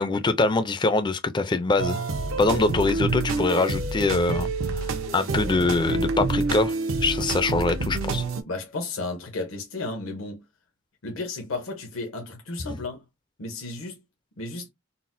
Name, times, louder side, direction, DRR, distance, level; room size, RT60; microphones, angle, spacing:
voice 1, 0.0-2.0 2.4-4.8 5.1-8.2, left 3 dB, 20° left, 0.4 m, -24 dB
sound 1, 1.8-8.4, right 3 dB, 75° right, 0.7 m, -27 dB
voice 2, 8.5-10.4 11.0-13.0 13.4-14.0 14.4-14.7, left 3 dB, 80° left, 0.8 m, -33 dB
4.0 x 2.1 x 2.5 m
head